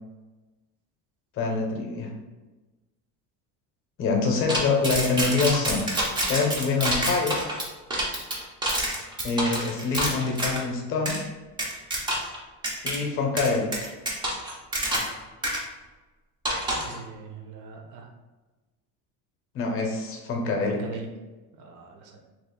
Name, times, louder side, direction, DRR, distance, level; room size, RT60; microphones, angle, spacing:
voice 1, 1.3-2.1 4.0-5.9 6.3-7.4 9.2-11.2 12.8-13.7 19.5-20.8, left 4 dB, 40° left, 1 dB, 0.6 m, -25 dB
sound 1, 4.5-10.6 11.1-11.2 11.6-12.4 12.6-13.0 13.4-15.2 15.4-15.6 16.4-17.0, right 1 dB, 15° right, 0.3 m, -27 dB
voice 2, 16.8-18.1 20.7-21.1 21.5-22.2, right 4 dB, 60° right, 2 dB, 0.6 m, -41 dB
3.0 x 2.4 x 3.5 m, 1.2 s
cardioid pair, 170°, 35 cm